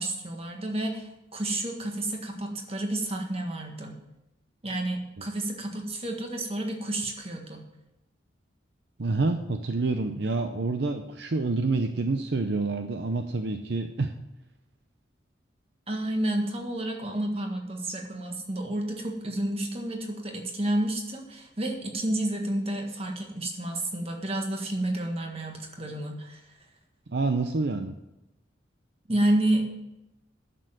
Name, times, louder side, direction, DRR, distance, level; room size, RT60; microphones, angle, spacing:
voice 1, 0.0-4.0 4.6-7.6 15.9-26.4 29.1-29.6, right 1 dB, 30° right, 2 dB, 1.6 m, -30 dB
voice 2, 9.0-14.1 27.1-27.9, right 3 dB, 60° right, 6 dB, 0.6 m, -27 dB
9.9 x 6.8 x 7.7 m, 0.93 s
head